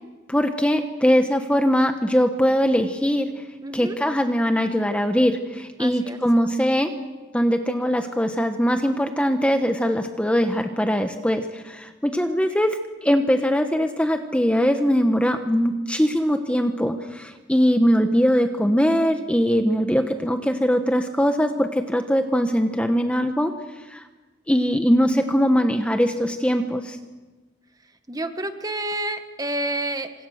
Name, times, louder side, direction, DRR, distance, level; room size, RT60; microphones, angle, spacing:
voice 1, 0.3-3.3 3.7-6.9 7.3-12.8 13.0-23.5 23.9-24.0 24.5-27.0, equal, 5° left, 6 dB, 1.1 m, -21 dB
voice 2, 3.6-3.9 5.8-6.2 28.1-30.1, right 1 dB, 20° right, 8 dB, 1.5 m, -29 dB
28.0 x 26.0 x 6.6 m, 1.2 s
head